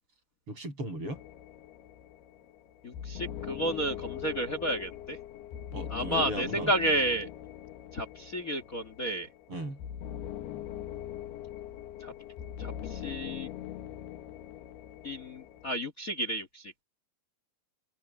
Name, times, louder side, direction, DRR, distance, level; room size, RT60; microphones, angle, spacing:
voice 1, 0.5-1.2 5.7-6.7 9.5-9.8, equal, 35° right, 8.4 m, -37 dB
sound 1, 1.1-15.7, left 10 dB, 90° left, 3.6 m, -42 dB
voice 2, 2.8-5.2 5.9-7.3 7.9-9.3 12.0-12.1 12.6-13.5 15.0-16.7, right 1 dB, 65° left, 0.8 m, -31 dB
open air
omnidirectional pair, 4.4 m